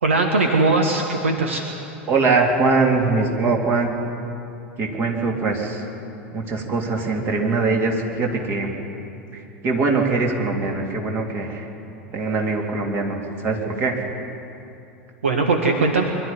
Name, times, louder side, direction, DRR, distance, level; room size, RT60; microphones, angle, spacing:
voice 1, 0.0-1.6 15.2-16.0, right 3 dB, 75° right, 3 dB, 1.5 m, -19 dB
voice 2, 2.1-3.9 4.8-5.8 6.3-8.7 9.3-11.7 12.1-13.2 13.4-14.0, right 3 dB, 35° right, 1 dB, 3.2 m, -22 dB
23.0 x 12.0 x 10.0 m, 2.7 s
figure-of-eight pair, 80°, 7 cm